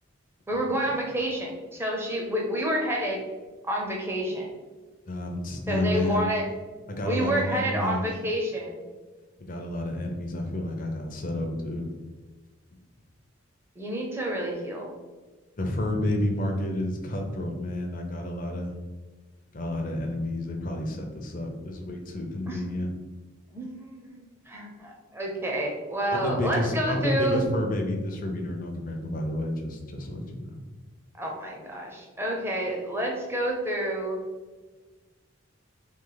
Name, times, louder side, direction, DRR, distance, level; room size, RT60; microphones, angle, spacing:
voice 1, 0.5-3.2 3.6-4.5 5.7-6.4 7.0-8.9 13.8-14.9 22.5-22.6 23.5-27.4 31.2-34.2, right 1 dB, 10° right, -1 dB, 0.6 m, -29 dB
voice 2, 5.1-6.2 6.9-8.1 9.4-11.9 15.6-18.7 19.5-22.9 26.1-30.5, left 1 dB, 40° left, 2 dB, 0.6 m, -30 dB
3.2 x 3.1 x 3.9 m, 1.3 s
head